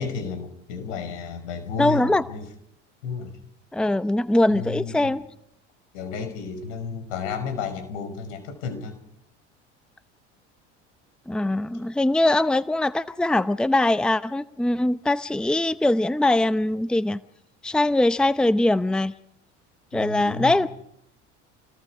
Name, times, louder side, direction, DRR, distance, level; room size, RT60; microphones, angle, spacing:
voice 1, 0.0-2.5 3.0-3.4 4.5-5.2 5.9-9.0 19.9-20.6, left 5 dB, 80° left, 9 dB, 5.3 m, -32 dB
voice 2, 1.8-2.3 3.7-5.2 11.3-17.2 17.6-19.1 19.9-20.7, left 1 dB, ahead, 14 dB, 0.8 m, -22 dB
28.5 x 20.0 x 4.9 m, 0.74 s
hypercardioid pair, 80°, 35 cm